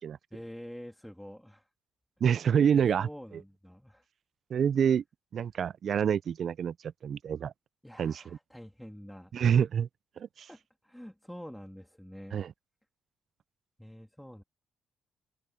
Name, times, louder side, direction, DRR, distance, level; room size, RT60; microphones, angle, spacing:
voice 1, 0.3-1.7 3.0-4.1 7.8-9.3 10.5-12.4 13.8-14.4, equal, 5° left, 2.2 m, -47 dB
voice 2, 2.2-3.1 4.5-5.0 5.3-6.7 7.0-7.5 8.0-8.2 9.3-9.9 10.2-10.5 12.3-12.5, right 8 dB, 55° right, 0.3 m, -27 dB
open air
cardioid pair, 90°, 0 cm